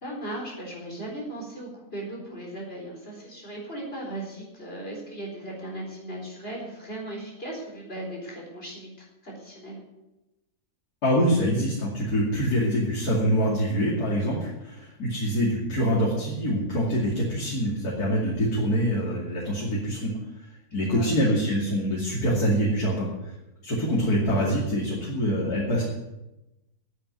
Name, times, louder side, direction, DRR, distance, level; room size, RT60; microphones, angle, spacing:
voice 1, 0.0-8.9 9.2-9.8 20.8-21.1, right 1 dB, 40° left, -2 dB, 4.4 m, -37 dB
voice 2, 11.0-20.1 20.7-23.1 23.6-25.8, equal, 85° left, -4 dB, 3.2 m, -25 dB
9.7 x 9.0 x 9.8 m, 0.95 s
omnidirectional pair, 1.6 m